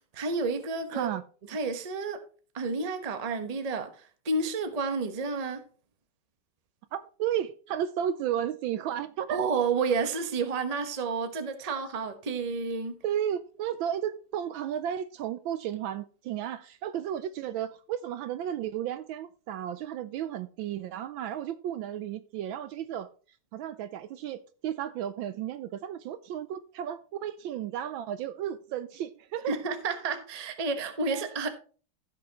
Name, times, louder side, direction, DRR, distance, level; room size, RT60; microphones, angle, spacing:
voice 1, 0.1-1.1 1.5-2.2 2.5-5.6 9.3-12.9 29.5-31.5, right 4 dB, 30° right, 0.8 m, -30 dB
voice 2, 0.9-1.2 6.9-9.4 11.7-11.8 13.0-23.1 23.5-29.6 31.1-31.3, right 10 dB, 75° right, 1.2 m, -33 dB
15.5 x 6.0 x 2.9 m
omnidirectional pair, 2.4 m